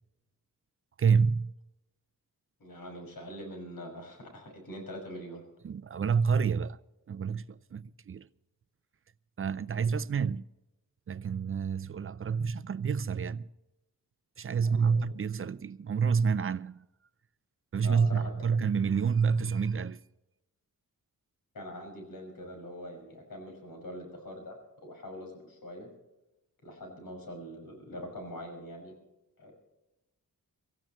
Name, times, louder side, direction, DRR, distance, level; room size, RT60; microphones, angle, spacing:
voice 1, 1.0-1.5 5.6-6.8 7.1-8.3 9.4-10.4 11.1-13.5 14.4-16.9 17.7-20.0, right 6 dB, 40° right, 0.5 m, -28 dB
voice 2, 2.6-5.4 14.6-15.0 17.8-18.5 21.5-25.9 26.6-28.9 29.4-29.5, equal, 75° left, 6.0 m, -43 dB
24.5 x 15.0 x 3.1 m
wide cardioid pair, 130°, 35 cm